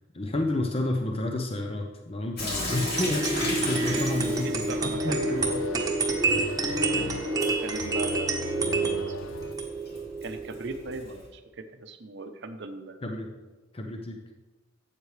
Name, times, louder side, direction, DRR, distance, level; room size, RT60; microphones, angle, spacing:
voice 1, 0.1-5.6 6.9-7.1 13.0-13.3 13.7-14.2, left 1 dB, 30° left, 3 dB, 0.7 m, -31 dB
Sink (filling or washing) / Drip, 2.4-11.3, left 1 dB, 55° left, 2.5 m, -38 dB
sound 1, 2.5-9.5, left 5 dB, 85° left, 0.5 m, -38 dB
sound 2, 2.7-11.0, right 3 dB, 20° right, 1.1 m, -29 dB
voice 2, 4.4-5.2 5.4-5.6 6.3-6.5 7.4-8.5 9.1-9.4 10.2-13.0, right 3 dB, 60° right, 8 dB, 0.7 m, -39 dB
12.5 x 8.2 x 3.3 m, 1.2 s
head